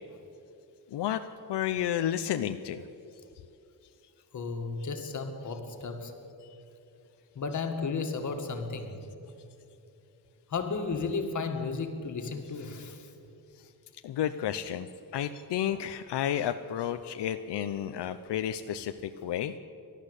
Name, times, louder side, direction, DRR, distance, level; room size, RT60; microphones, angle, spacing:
voice 1, 0.9-1.2 1.5-2.8 7.5-7.6 14.0-14.9 15.1-19.5, left 10 dB, 85° left, 8 dB, 0.8 m, -31 dB
voice 2, 4.3-6.1 7.4-9.0 10.5-13.1, left 4 dB, 45° left, 5 dB, 2.0 m, -33 dB
30.0 x 12.0 x 8.3 m, 2.8 s
wide cardioid pair, 175°, 40 cm